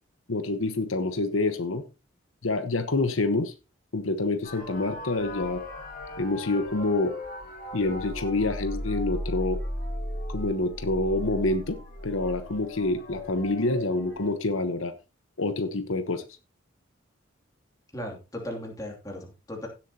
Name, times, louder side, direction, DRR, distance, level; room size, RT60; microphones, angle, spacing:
voice 1, 0.3-1.8 2.4-3.5 3.9-5.6 6.2-7.1 7.7-9.6 10.3-11.8 12.0-14.9 15.4-16.2, left 2 dB, 80° left, 9 dB, 1.1 m, -27 dB
sound 1, 4.4-14.3, left 1 dB, 40° left, 3.3 m, -36 dB
voice 2, 17.9-19.7, left 1 dB, 15° left, 1 dB, 2.7 m, -37 dB
16.5 x 7.5 x 2.9 m, 0.29 s
head